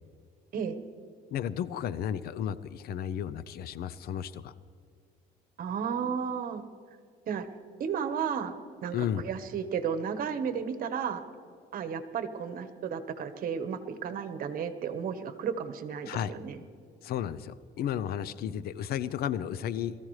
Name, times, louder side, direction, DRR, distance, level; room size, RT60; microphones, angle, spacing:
voice 1, 1.3-4.5 8.9-9.2 16.1-16.3 17.0-20.0, left 9 dB, 65° left, 16 dB, 0.6 m, -33 dB
voice 2, 5.6-6.6 7.3-7.5 7.8-8.5 8.8-9.0 9.2-11.2 11.7-16.6, right 7 dB, 55° right, 9 dB, 1.2 m, -33 dB
22.0 x 14.5 x 3.2 m, 2.3 s
cardioid pair, 110°, 17 cm